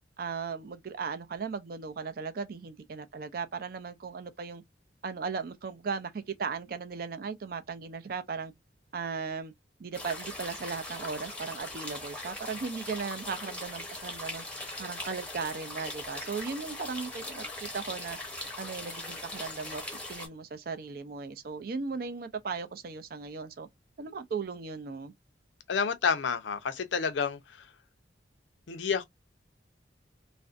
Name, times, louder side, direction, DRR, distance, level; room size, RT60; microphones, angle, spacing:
voice 1, 0.2-4.6 5.0-8.5 8.9-9.5 9.8-14.4 14.8-18.2 18.6-19.8 20.1-23.7 24.0-25.1, right 5 dB, 50° right, 0.4 m, -37 dB
sound 1, 9.9-20.3, left 2 dB, 5° left, 0.7 m, -40 dB
voice 2, 25.7-27.4 28.7-29.0, left 6 dB, 80° left, 0.5 m, -29 dB
2.5 x 2.1 x 2.4 m
head